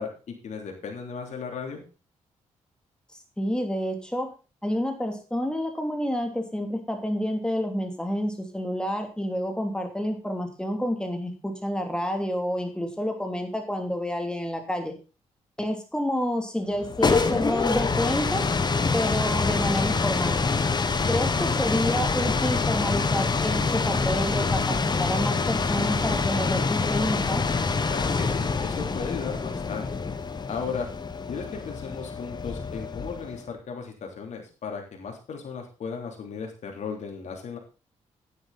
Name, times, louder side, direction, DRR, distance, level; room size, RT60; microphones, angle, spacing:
voice 1, 0.0-1.8 27.9-30.1 30.5-30.9 31.3-37.6, left 5 dB, 70° left, 2 dB, 3.4 m, -35 dB
voice 2, 3.4-4.3 4.6-14.9 15.6-18.5 18.9-20.4 21.1-27.4, equal, 5° left, 5 dB, 3.0 m, -29 dB
sound 1, 16.7-33.4, left 4 dB, 35° left, 1.2 m, -26 dB
10.0 x 9.3 x 4.1 m, 0.32 s
cardioid pair, 75°, 12 cm